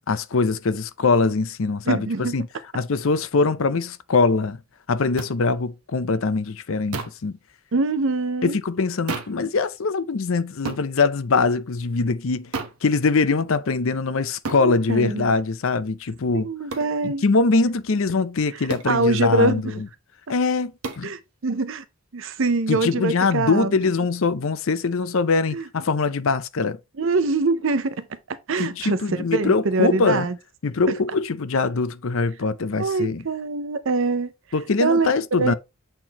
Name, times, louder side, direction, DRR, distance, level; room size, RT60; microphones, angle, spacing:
voice 1, 0.1-2.5 2.7-4.6 4.9-7.4 8.4-12.5 12.8-16.5 17.0-19.9 20.3-21.1 22.7-26.8 28.6-30.3 30.6-33.2 34.5-35.5, left 4 dB, 65° left, 0.6 m, -22 dB
voice 2, 1.9-2.4 7.7-8.6 14.6-15.3 16.3-17.2 18.9-19.6 21.0-21.8 22.1-23.7 25.5-25.6 27.0-30.4 32.8-34.3 34.8-35.1 35.4-35.5, right 3 dB, 60° right, 0.6 m, -24 dB
sound 1, 5.2-5.3 6.9-7.3 9.1-9.4 10.6-10.9 12.5-12.8 14.4-14.7 16.7-16.9 18.7-19.0 20.8-21.1, right 3 dB, 80° right, 1.1 m, -31 dB
7.7 x 4.4 x 2.9 m
head